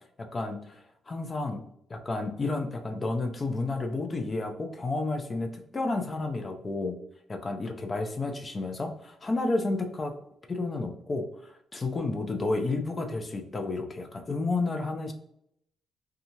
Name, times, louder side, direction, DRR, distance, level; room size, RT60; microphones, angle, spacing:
voice 1, 0.2-7.0 7.3-10.2 10.5-15.1, left 3 dB, 30° left, 5 dB, 0.5 m, -31 dB
2.9 x 2.3 x 2.6 m, 0.74 s
cardioid pair, 90°, 0 cm